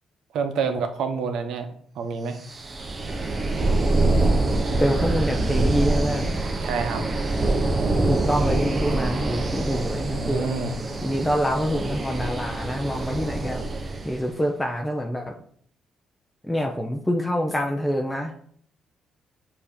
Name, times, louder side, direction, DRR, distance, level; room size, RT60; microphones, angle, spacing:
voice 1, 0.3-1.7 1.9-2.4 6.6-7.0 10.0-10.8, right 5 dB, 80° right, 6 dB, 0.8 m, -28 dB
sound 1, 2.4-14.2, right 2 dB, 35° right, 0.8 m, -25 dB
voice 2, 4.8-6.4 7.9-10.5 11.0-13.6 14.0-15.4 16.4-18.3, equal, 10° left, 1 dB, 0.6 m, -26 dB
7.0 x 2.8 x 5.0 m, 0.62 s
cardioid pair, 90°, 0 cm